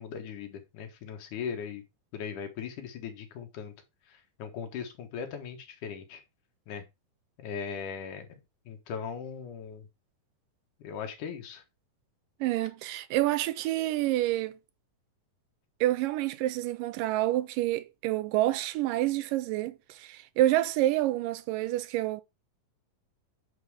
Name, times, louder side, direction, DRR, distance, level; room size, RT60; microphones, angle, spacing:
voice 1, 0.0-1.8 2.1-3.7 4.1-6.2 6.7-6.8 7.4-8.3 8.7-9.9 10.8-11.6, left 7 dB, 65° left, 2.8 m, -39 dB
voice 2, 12.4-14.6 15.8-22.2, right 15 dB, 80° right, 2.1 m, -28 dB
9.2 x 4.4 x 4.9 m
omnidirectional pair, 4.1 m